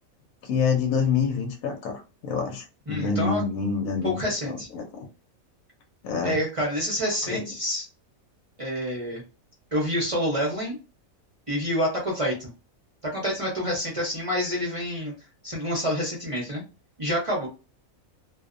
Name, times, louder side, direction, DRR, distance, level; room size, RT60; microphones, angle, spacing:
voice 1, 0.4-5.1 6.0-6.4 7.2-7.5, left 5 dB, 80° left, 3 dB, 1.0 m, -27 dB
voice 2, 2.9-3.4 4.0-4.7 6.2-7.8 8.6-9.2 9.7-10.8 11.5-12.5 13.0-15.1 15.4-16.6 17.0-17.5, equal, 35° right, -3 dB, 0.6 m, -27 dB
2.6 x 2.1 x 2.4 m, 0.30 s
omnidirectional pair, 1.5 m